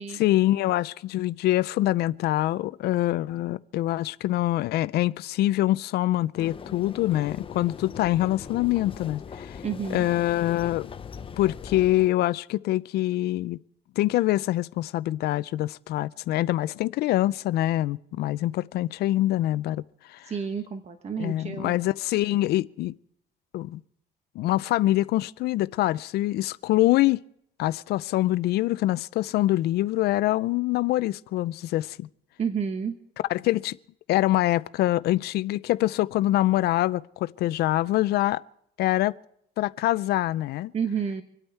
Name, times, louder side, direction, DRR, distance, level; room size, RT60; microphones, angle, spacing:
voice 1, 0.2-9.6 9.9-10.9 11.4-13.6 14.0-19.8 20.1-20.3 21.2-22.9 23.5-23.8 24.4-27.2 27.6-32.1 33.3-33.8 34.1-38.4 38.8-39.1 39.6-40.7, left 15 dB, 70° left, 0.5 m, -25 dB
sound 1, 6.4-12.1, left 6 dB, 30° left, 0.8 m, -40 dB
voice 2, 9.6-10.1 20.2-21.8 32.4-33.0 40.7-41.2, right 6 dB, 40° right, 1.2 m, -30 dB
26.0 x 8.9 x 4.5 m
cardioid pair, 110°, 17 cm